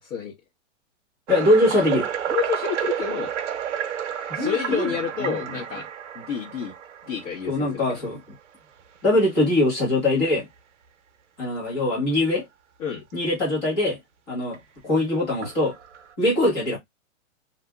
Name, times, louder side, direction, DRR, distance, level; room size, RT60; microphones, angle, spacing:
voice 1, 0.0-0.3 2.3-3.3 4.3-5.9 6.1-6.7 7.1-7.8 12.8-13.0, left 7 dB, 80° left, 1.4 m, -29 dB
voice 2, 1.3-2.1 4.3-4.9 5.2-5.5 7.5-8.2 9.0-10.5 11.4-12.4 13.1-14.0 14.3-14.6 14.8-15.7 16.2-16.8, left 1 dB, 20° left, 1.3 m, -22 dB
sound 1, 1.3-8.1 8.8-9.0 9.5-9.6 10.2-10.3 11.6-11.7 14.5-14.6 15.4-16.1, right 9 dB, 65° right, 0.6 m, -31 dB
2.7 x 2.5 x 2.2 m
hypercardioid pair, 175°, 39 cm